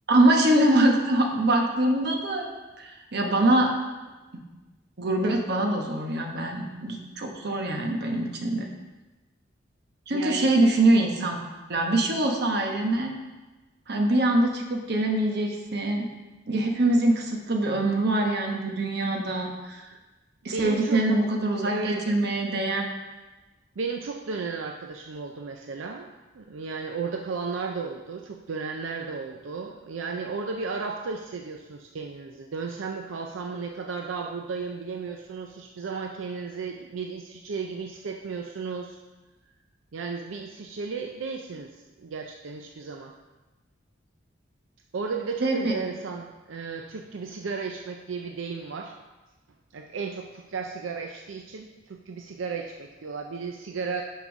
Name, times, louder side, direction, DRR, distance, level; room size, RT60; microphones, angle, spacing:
voice 1, 0.1-3.7 5.0-8.6 10.1-11.3 11.7-13.1 13.9-16.1 16.5-19.8 20.4-22.8 45.4-45.8, right 1 dB, 55° right, 2 dB, 1.0 m, -24 dB
voice 2, 10.1-10.5 20.5-21.0 21.6-22.0 23.8-26.1 26.3-39.0 39.9-43.1 44.9-49.0 49.7-54.0, right 4 dB, 85° right, 3 dB, 0.5 m, -34 dB
6.0 x 5.5 x 5.3 m, 1.2 s
head